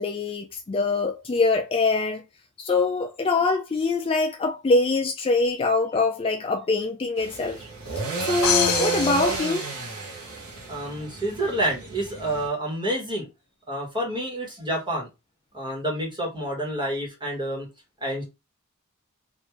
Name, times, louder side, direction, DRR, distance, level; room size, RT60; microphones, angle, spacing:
voice 1, 0.0-2.2 2.6-7.6 8.2-9.7, left 3 dB, 25° left, 0.3 m, -24 dB
sound 1, 7.2-12.5, right 3 dB, 75° right, 1.0 m, -31 dB
sound 2, 8.4-10.4, left 8 dB, 85° left, 0.8 m, -27 dB
voice 2, 10.7-13.3 13.7-15.1 15.5-17.7 18.0-18.2, right 1 dB, 20° right, 1.3 m, -28 dB
3.5 x 2.5 x 3.0 m
head